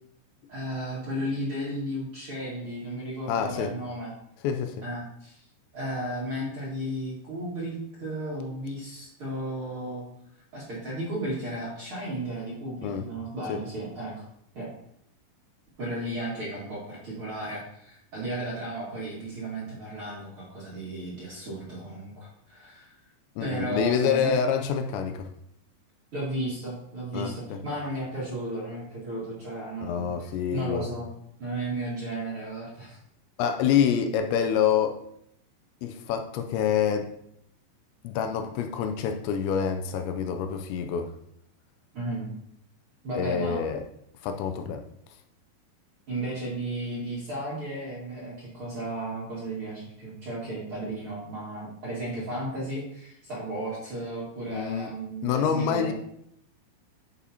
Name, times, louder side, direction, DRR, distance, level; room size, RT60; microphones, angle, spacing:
voice 1, 0.5-4.1 4.8-5.4 5.7-10.0 10.5-14.2 14.5-14.7 15.8-22.9 23.4-24.3 26.1-31.1 31.4-33.0 41.9-42.3 43.0-43.6 46.1-55.9, right 1 dB, 45° right, -8 dB, 1.9 m, -34 dB
voice 2, 3.3-3.7 4.4-4.8 12.8-13.0 13.5-13.6 23.4-25.3 27.1-27.6 29.8-30.9 33.4-35.0 35.8-37.1 38.0-41.1 43.2-43.8 44.2-44.8 54.5-54.9 55.2-55.9, left 7 dB, 80° left, 6 dB, 2.8 m, -27 dB
11.0 x 6.9 x 2.8 m, 0.75 s
omnidirectional pair, 5.3 m